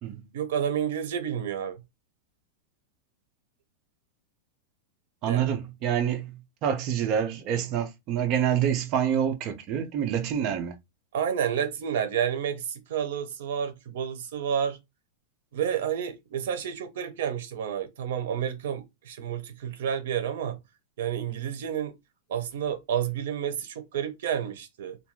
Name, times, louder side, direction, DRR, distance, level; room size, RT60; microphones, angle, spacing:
voice 1, 0.3-1.8 5.2-5.5 11.1-14.8 15.5-20.6 21.0-21.9 22.3-25.0, right 8 dB, 65° right, 0.7 m, -30 dB
voice 2, 5.2-6.3 6.6-10.8, right 9 dB, 30° right, 0.4 m, -27 dB
2.5 x 2.3 x 2.9 m
supercardioid pair, 175°, 0 cm